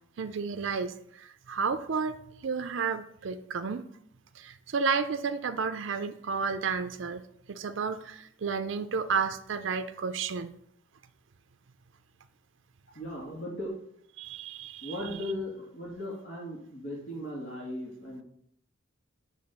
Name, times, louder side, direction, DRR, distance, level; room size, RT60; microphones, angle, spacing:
voice 1, 0.2-3.8 4.4-10.5 14.2-15.0, right 5 dB, 65° right, 9 dB, 0.5 m, -32 dB
voice 2, 12.9-13.7 14.8-18.2, left 1 dB, 70° left, -3 dB, 2.3 m, -37 dB
8.6 x 3.2 x 6.6 m, 0.70 s
head